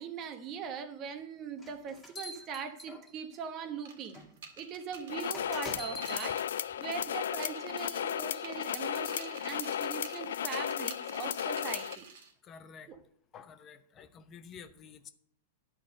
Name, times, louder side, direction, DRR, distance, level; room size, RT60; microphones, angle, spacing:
voice 1, 0.0-4.2 4.6-6.4 6.8-12.1 12.9-13.0, right 6 dB, 40° right, 9 dB, 1.1 m, -41 dB
sound 1, 1.6-3.4 4.1-4.3 5.3-6.3, left 2 dB, 15° left, 1.9 m, -44 dB
sound 2, 3.8-7.1 7.4-8.1 8.4-12.3, right 5 dB, 70° right, 1.9 m, -50 dB
sound 3, 5.1-12.0, left 9 dB, 75° left, 0.3 m, -35 dB
voice 2, 12.4-13.0 13.3-15.1, left 6 dB, 30° left, 9 dB, 0.8 m, -51 dB
10.5 x 4.4 x 7.5 m, 0.65 s
hypercardioid pair, 110°, 0 cm